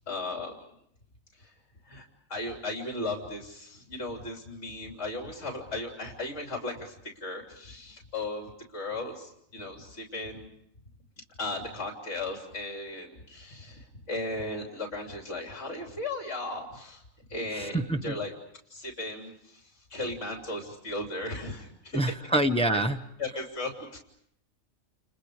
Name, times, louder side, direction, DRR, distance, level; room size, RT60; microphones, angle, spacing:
voice 1, 0.1-0.6 1.4-1.5 1.9-6.9 7.2-10.5 11.4-17.0 17.3-18.3 18.7-19.6 19.9-22.0 22.7-22.8 23.2-24.0, left 2 dB, 60° left, 1 dB, 3.9 m, -36 dB
voice 2, 17.5-18.2 21.9-23.0, right 1 dB, 5° left, 6 dB, 1.0 m, -26 dB
30.0 x 30.0 x 5.0 m, 0.73 s
omnidirectional pair, 1.4 m